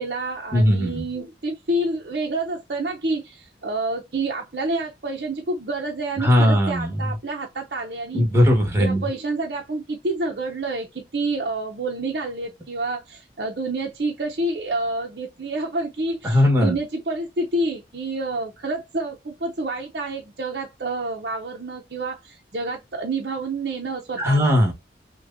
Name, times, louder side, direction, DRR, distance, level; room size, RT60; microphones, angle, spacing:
voice 1, 0.0-8.3 8.8-24.6, right 2 dB, 60° right, 0.6 m, -28 dB
voice 2, 0.5-1.0 6.2-6.9 8.1-9.0 16.2-16.7 24.2-24.7, left 1 dB, 15° right, 1.4 m, -18 dB
6.1 x 2.2 x 2.5 m
head